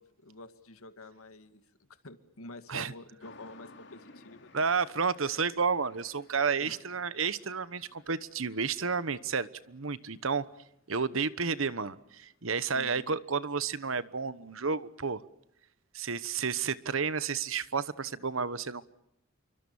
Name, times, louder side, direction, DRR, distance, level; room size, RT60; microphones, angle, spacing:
voice 1, 0.0-4.5 6.6-6.8 12.7-13.1, left 2 dB, 85° left, 2.0 m, -49 dB
sound 1, 3.2-12.9, left 3 dB, 55° left, 2.7 m, -59 dB
voice 2, 4.5-10.4 10.9-15.2 15.9-18.9, right 5 dB, 70° right, 1.1 m, -31 dB
28.5 x 24.0 x 7.1 m
head